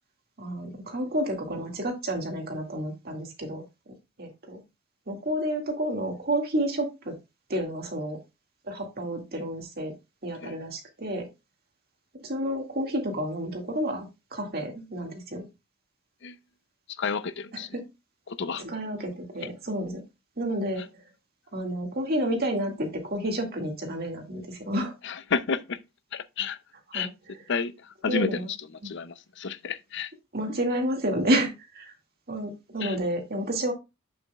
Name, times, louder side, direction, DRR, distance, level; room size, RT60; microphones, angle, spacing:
voice 1, 0.4-3.6 4.2-4.6 5.1-7.1 7.5-8.2 8.6-9.9 10.2-11.3 12.2-14.1 14.3-15.4 17.7-17.8 18.6-20.0 20.4-20.8 21.5-24.9 26.9-27.1 28.1-28.5 30.3-31.9 32.3-33.7, right 1 dB, 45° right, 2.1 m, -30 dB
voice 2, 17.0-17.7 18.3-18.6 25.0-25.8 26.1-26.6 26.9-27.1 27.5-28.6 28.8-30.1 32.8-33.0, left 5 dB, 55° left, 0.6 m, -31 dB
8.2 x 6.9 x 2.3 m
head